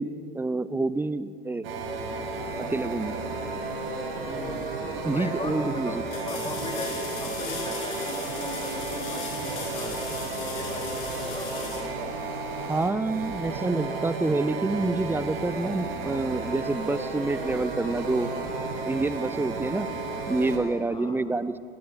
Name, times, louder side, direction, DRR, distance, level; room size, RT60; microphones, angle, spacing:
voice 1, 0.0-1.7 2.7-3.2 5.0-6.0 12.7-18.3 18.9-19.9 20.3-21.6, right 2 dB, 5° right, 16 dB, 0.7 m, -27 dB
sound 1, 1.6-20.6, right 3 dB, 70° right, 6.0 m, -33 dB
voice 2, 4.2-4.7 5.1-11.8 20.9-21.2, left 3 dB, 15° left, 2 dB, 4.1 m, -38 dB
sound 2, 6.1-12.7 15.5-15.6, left 5 dB, 55° left, 6.7 m, -39 dB
28.0 x 18.5 x 6.3 m, 2.3 s
hypercardioid pair, 95°, 31 cm